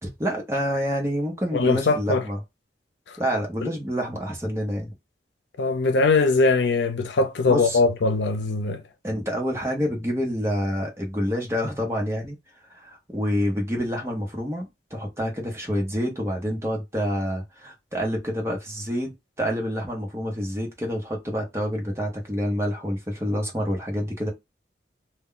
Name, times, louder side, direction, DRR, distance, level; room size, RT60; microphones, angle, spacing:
voice 1, 0.0-2.4 3.2-4.9 7.5-7.8 9.0-12.4 12.7-24.3, equal, 15° right, 0.7 m, -27 dB
voice 2, 1.5-2.2 5.6-8.8, left 3 dB, 85° left, 0.5 m, -21 dB
2.2 x 2.2 x 3.6 m
head